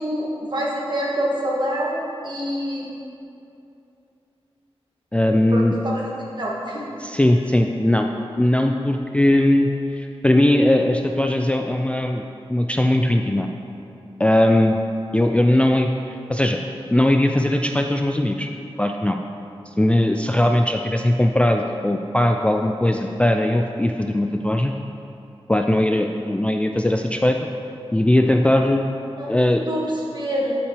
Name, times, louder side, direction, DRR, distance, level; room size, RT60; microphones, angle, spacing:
voice 1, 0.0-2.9 5.5-6.8 29.2-29.3 29.7-30.5, equal, 45° right, -5 dB, 1.8 m, -26 dB
voice 2, 5.1-5.7 7.0-8.1 8.4-12.2 12.5-13.5 14.2-14.8 15.1-16.6 16.9-18.5 18.8-19.2 19.7-24.7 25.5-27.4 27.9-28.8 29.3-29.6, left 1 dB, 10° left, 3 dB, 0.3 m, -19 dB
12.5 x 5.9 x 3.3 m, 2.7 s
wide cardioid pair, 90°, 10 cm